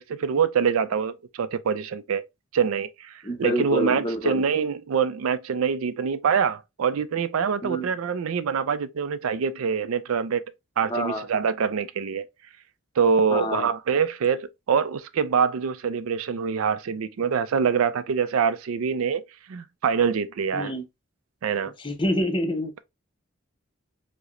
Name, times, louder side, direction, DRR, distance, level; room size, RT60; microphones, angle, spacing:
voice 1, 0.0-2.2 2.5-3.1 3.4-10.4 10.8-12.3 13.0-19.2 19.5-20.7 21.4-21.7, right 6 dB, 90° right, 0.4 m, -25 dB
voice 2, 3.2-4.4 7.6-7.9 10.9-11.3 13.3-13.7 20.5-20.8 21.8-22.8, equal, 25° left, 0.7 m, -27 dB
4.7 x 2.1 x 3.0 m
head